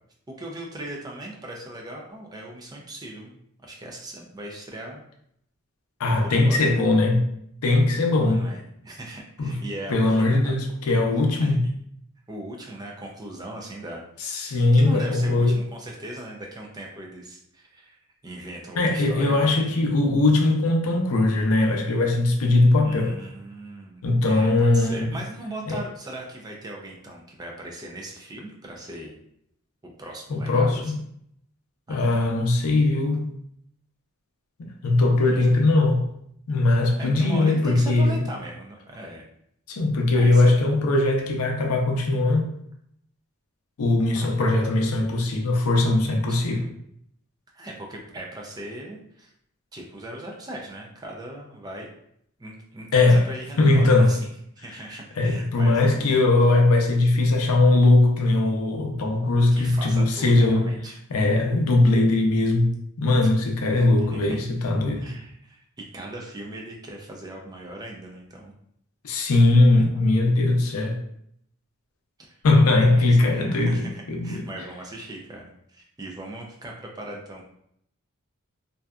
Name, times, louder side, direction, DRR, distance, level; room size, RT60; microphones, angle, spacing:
voice 1, 0.3-5.1 6.2-6.8 8.2-10.4 11.4-11.6 12.3-19.7 22.8-24.0 24.3-29.2 29.8-30.9 31.9-32.1 35.0-35.6 37.0-39.2 40.1-40.5 44.1-44.6 46.1-46.7 47.5-49.3 49.7-51.9 52.4-54.2 54.6-56.6 59.5-61.0 64.0-64.4 65.0-68.5 69.8-70.0 72.2-72.4 72.8-77.5, right 1 dB, 20° right, 0.3 m, -39 dB
voice 2, 6.0-7.3 7.6-8.5 9.4-9.6 9.9-11.7 14.3-15.6 18.8-23.2 24.0-25.1 25.7-25.8 30.3-31.0 31.9-33.3 34.6-36.1 36.5-38.2 39.7-42.5 43.8-46.7 52.9-53.2 53.6-54.1 55.2-60.6 61.1-65.1 69.0-71.0 72.4-74.4, left 2 dB, 85° left, 0.5 m, -20 dB
2.6 x 2.2 x 2.3 m
head